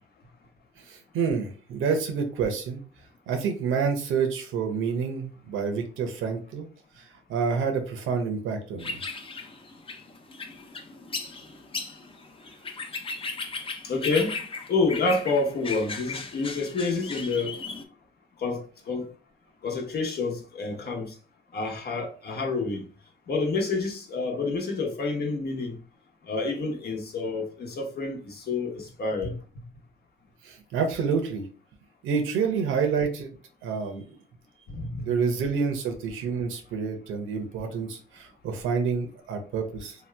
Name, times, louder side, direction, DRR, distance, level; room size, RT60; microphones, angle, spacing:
voice 1, 0.9-2.8 3.3-6.7 7.3-9.0 30.4-31.5 32.0-33.3 33.6-34.0 35.0-40.0, right 5 dB, 85° right, 0.8 m, -28 dB
sound 1, 8.8-17.8, left 4 dB, 25° left, 0.6 m, -36 dB
voice 2, 13.8-14.3 14.7-17.5 18.4-19.1 19.6-21.1 21.5-22.9 23.3-25.8 26.3-29.3 34.7-35.1, left 3 dB, 55° left, 1.0 m, -28 dB
2.8 x 2.2 x 3.3 m
cardioid pair, 90°, 20 cm